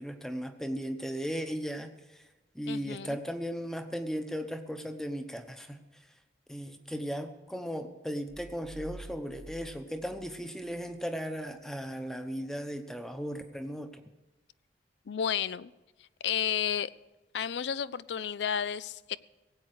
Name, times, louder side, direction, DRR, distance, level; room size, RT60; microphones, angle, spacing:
voice 1, 0.0-1.9 2.5-5.8 6.5-14.0, equal, 5° left, 8 dB, 0.9 m, -36 dB
voice 2, 2.7-3.2 15.1-15.7 16.2-16.9 17.3-19.2, left 8 dB, 85° left, 18 dB, 0.4 m, -32 dB
sound 1, 8.3-11.0, right 2 dB, 30° right, 0.4 m, -49 dB
17.5 x 8.5 x 6.4 m, 1.1 s
head